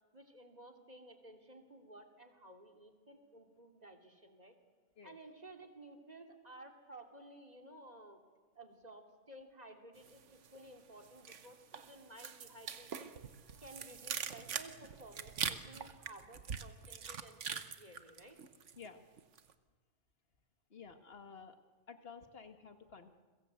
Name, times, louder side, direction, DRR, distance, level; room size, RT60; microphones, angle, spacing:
voice 1, 0.1-4.5 5.0-8.2 8.6-13.1 13.6-18.4, right 1 dB, 35° right, 4 dB, 2.9 m, -55 dB
sound 1, 10.0-10.7 11.0-18.9 19.2-19.5, right 7 dB, 75° right, 1.4 m, -43 dB
voice 2, 20.7-21.6 21.9-23.2, left 5 dB, 55° left, 7 dB, 2.0 m, -52 dB
29.5 x 22.5 x 8.2 m, 1.4 s
omnidirectional pair, 1.3 m